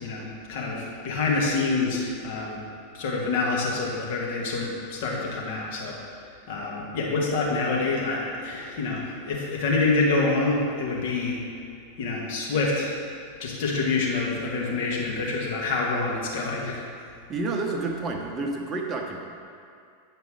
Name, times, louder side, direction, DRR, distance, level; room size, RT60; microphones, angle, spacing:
voice 1, 0.0-2.6 2.9-11.4 12.0-13.0 13.4-16.8, left 3 dB, 50° left, -3 dB, 1.5 m, -27 dB
voice 2, 17.3-19.2, right 3 dB, 25° right, 1 dB, 0.9 m, -29 dB
9.3 x 5.1 x 3.8 m, 2.4 s
figure-of-eight pair, 90°, 0 cm